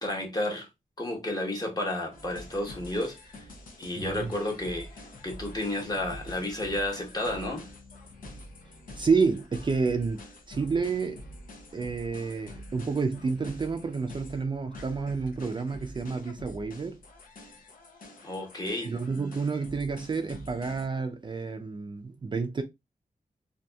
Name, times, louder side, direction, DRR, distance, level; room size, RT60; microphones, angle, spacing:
voice 1, 0.0-0.7 1.0-3.2 3.8-4.9 5.2-7.6 18.2-18.9, left 1 dB, 25° left, 1.0 m, -31 dB
sound 1, 2.1-20.9, left 1 dB, 70° left, 0.7 m, -46 dB
voice 2, 4.0-4.3 9.0-10.2 10.5-11.2 11.7-17.0 18.8-22.6, right 4 dB, 35° right, 0.4 m, -29 dB
2.6 x 2.6 x 2.2 m
wide cardioid pair, 90°, 15 cm